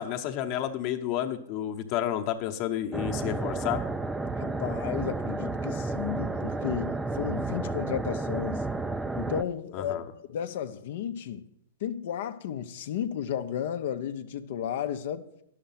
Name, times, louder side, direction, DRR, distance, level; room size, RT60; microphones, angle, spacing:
voice 1, 0.0-3.8 9.7-10.0, left 10 dB, 45° left, 0.9 m, -31 dB
sound 1, 2.9-9.4, right 3 dB, 10° right, 0.4 m, -31 dB
voice 2, 4.4-8.6 9.1-10.0 10.3-11.4 11.8-15.3, left 9 dB, 60° left, 0.6 m, -33 dB
10.5 x 6.6 x 5.7 m
hypercardioid pair, 125°, 0 cm